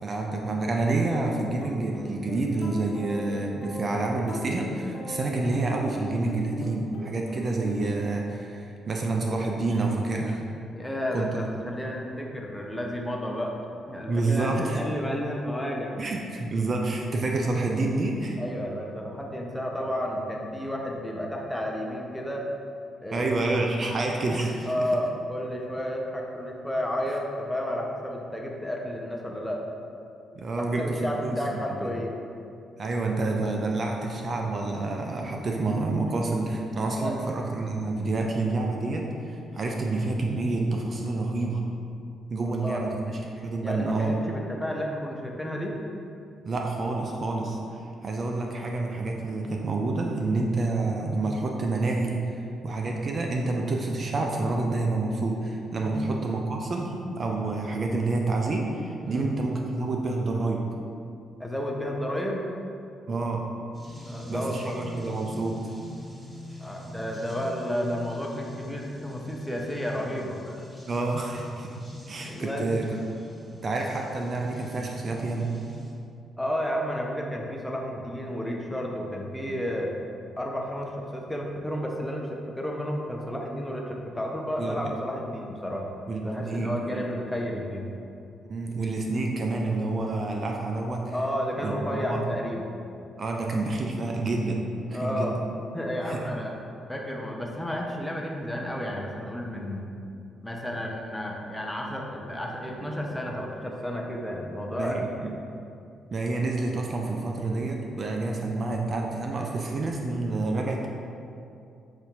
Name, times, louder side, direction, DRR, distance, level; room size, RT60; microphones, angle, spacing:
voice 1, 0.0-10.4 11.1-11.5 14.1-14.8 16.0-18.4 23.1-24.9 30.3-31.4 31.8-31.9 32.8-41.6 42.3-44.2 46.4-52.3 52.6-60.7 63.1-63.5 64.3-65.7 70.9-71.8 72.1-72.8 73.6-75.5 84.6-84.9 86.1-87.1 88.4-91.1 91.6-92.2 93.2-95.4 96.1-96.3 104.7-105.3 106.1-110.9, right 2 dB, 45° right, 1 dB, 0.4 m, -28 dB
sound 1, 1.1-8.6, left 1 dB, 65° left, 0.5 m, -38 dB
voice 2, 10.7-13.6 13.9-16.0 18.4-22.5 23.0-23.3 24.6-29.6 30.5-32.2 37.0-37.2 42.4-42.8 43.6-45.8 55.8-56.1 59.0-59.3 61.4-62.5 64.0-64.8 66.6-70.6 72.2-72.7 76.4-80.0 80.4-85.9 86.2-87.9 91.1-92.6 94.9-95.4 95.7-96.6 96.9-99.9 100.4-105.4, equal, 5° left, -1 dB, 0.6 m, -32 dB
sound 2, 63.7-75.9, left 1 dB, 15° right, 1.2 m, -44 dB
5.7 x 2.6 x 2.5 m, 2.5 s
hypercardioid pair, 40°, 0 cm